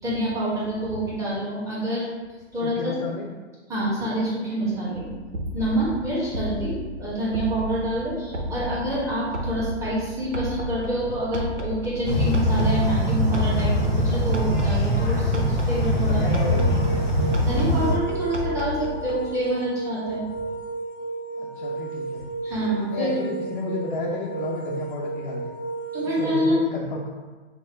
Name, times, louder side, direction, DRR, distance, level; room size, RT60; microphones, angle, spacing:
voice 1, 0.0-2.1 2.5-2.9 3.7-5.1 5.5-16.2 17.4-20.2 22.4-23.1 25.9-26.7, right 1 dB, 10° right, -8 dB, 1.1 m, -27 dB
voice 2, 2.6-3.3 16.1-16.9 21.4-22.2 22.9-25.5 26.0-27.1, left 2 dB, 45° left, -4 dB, 0.7 m, -31 dB
sound 1, 4.9-19.3, equal, 85° right, 0.8 m, -33 dB
sound 2, 12.0-17.9, equal, 10° left, 0.8 m, -22 dB
sound 3, 16.4-26.5, right 3 dB, 30° right, 0.5 m, -33 dB
5.8 x 2.1 x 3.3 m, 1.3 s
figure-of-eight pair, 120°, 35 cm